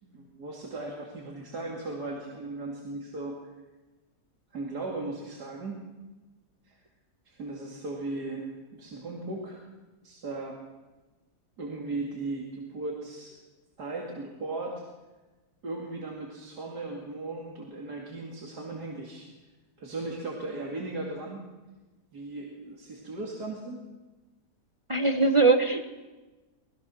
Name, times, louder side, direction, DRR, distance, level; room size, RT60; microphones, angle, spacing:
voice 1, 0.0-3.3 4.5-5.8 6.6-6.8 7.3-9.7 10.0-10.6 11.6-13.3 13.8-14.8 15.6-19.3 19.8-21.5 22.1-23.8, right 2 dB, 70° right, -1 dB, 3.1 m, -37 dB
voice 2, 24.9-25.9, right 3 dB, 20° right, 6 dB, 1.0 m, -21 dB
25.5 x 20.0 x 6.4 m, 1.2 s
omnidirectional pair, 1.8 m